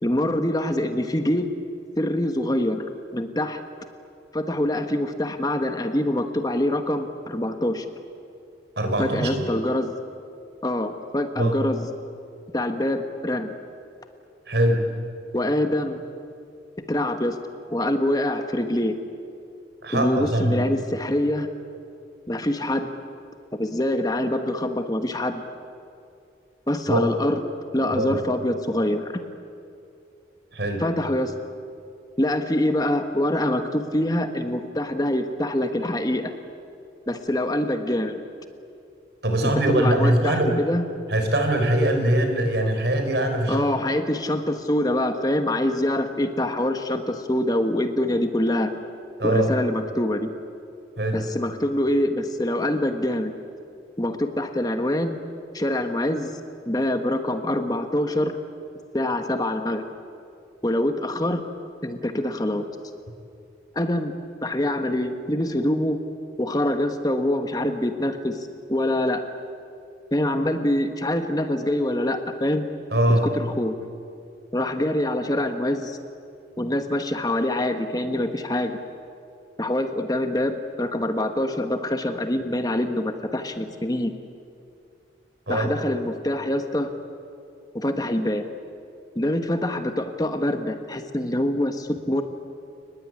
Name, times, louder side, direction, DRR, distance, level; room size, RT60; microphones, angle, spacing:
voice 1, 0.0-1.5 2.0-2.8 3.1-3.6 4.3-7.8 9.0-9.9 10.6-11.9 12.5-13.6 15.3-16.0 16.9-17.4 17.7-19.0 19.9-21.5 22.3-22.9 23.5-25.4 26.7-27.4 27.7-29.2 30.8-31.3 32.2-36.3 37.1-38.2 39.4-40.8 43.5-48.7 49.2-50.3 51.1-53.3 54.0-55.2 55.5-56.4 56.6-58.3 58.9-59.8 60.6-61.4 61.8-62.7 63.7-64.1 64.4-66.0 66.4-69.2 70.1-72.7 73.1-73.7 74.5-76.0 76.6-78.8 79.6-84.1 85.5-86.9 87.7-88.5 89.1-92.2, left 1 dB, 20° left, 7 dB, 1.4 m, -25 dB
voice 2, 8.8-9.4 11.4-11.6 14.5-14.8 19.8-20.6 26.9-27.0 27.9-28.1 30.5-30.8 39.2-40.5 41.1-43.7 49.2-49.5 51.0-51.2 72.9-73.3 85.5-85.7, right 1 dB, 70° right, 5 dB, 4.6 m, -22 dB
30.0 x 20.5 x 9.7 m, 2.5 s
head